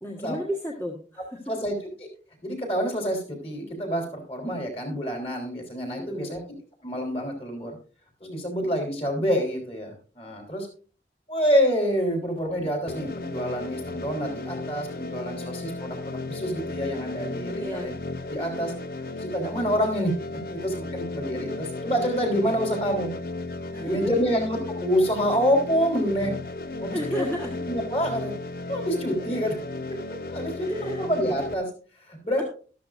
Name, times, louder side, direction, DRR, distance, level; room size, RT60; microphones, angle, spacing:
voice 1, 0.0-1.5 6.0-6.5 17.6-17.9 23.7-24.2 26.9-27.5 30.5-31.0, equal, 10° left, -2 dB, 1.4 m, -33 dB
voice 2, 2.4-6.4 6.8-7.8 8.2-10.7 11.3-17.9 18.3-18.7 19.2-20.1 20.5-23.1 23.8-26.3 26.8-27.3 27.7-28.3 28.7-29.6 29.9-31.7 32.0-32.4, equal, 35° left, 2 dB, 3.7 m, -27 dB
sound 1, 12.9-31.5, left 2 dB, 55° left, 0.6 m, -35 dB
13.0 x 12.5 x 2.5 m, 0.38 s
head